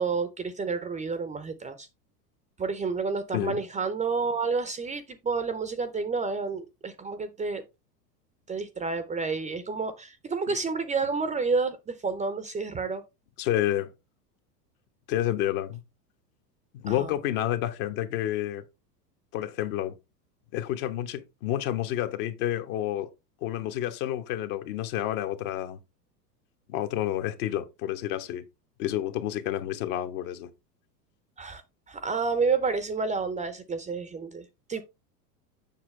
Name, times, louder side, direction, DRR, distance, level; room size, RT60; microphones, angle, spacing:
voice 1, 0.0-1.9 2.6-7.6 8.5-13.0 16.9-17.1 31.4-31.6 31.9-34.8, right 4 dB, 15° right, 0.6 m, -30 dB
voice 2, 13.4-13.9 15.1-15.8 16.7-18.6 19.3-19.9 20.5-23.1 23.4-25.8 26.7-28.4 28.8-30.5, left 12 dB, 55° left, 1.3 m, -29 dB
7.4 x 6.0 x 3.3 m
hypercardioid pair, 100°, 50 cm